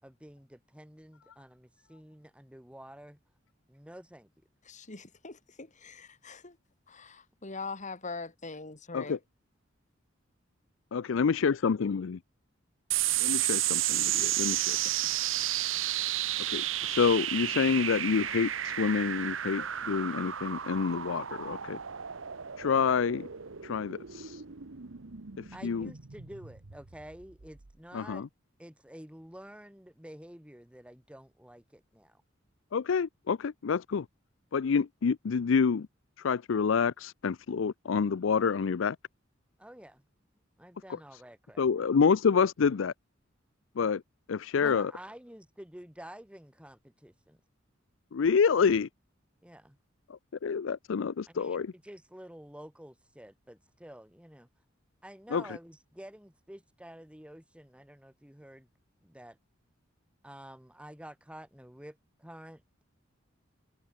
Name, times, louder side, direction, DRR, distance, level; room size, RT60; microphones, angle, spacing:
voice 1, 0.0-3.2 3.7-4.3 25.5-28.3 28.6-32.2 39.6-40.0 40.6-41.7 44.6-47.4 49.4-49.8 51.3-54.5 55.0-58.7 59.0-59.4 60.2-62.8, equal, 5° right, 4.7 m, -49 dB
voice 2, 4.7-6.6 6.9-9.2, left 4 dB, 40° left, 2.6 m, -42 dB
voice 3, 10.9-12.2 13.2-14.9 16.5-21.8 22.6-23.3 23.6-24.4 25.4-25.9 27.9-28.3 32.7-34.1 34.5-35.9 36.2-39.0 41.6-42.9 43.8-44.0 44.3-44.9 48.1-48.9 50.1-51.7 55.3-55.4, left 6 dB, 75° left, 0.5 m, -28 dB
sound 1, 12.9-27.7, right 12 dB, 85° right, 1.1 m, -32 dB
head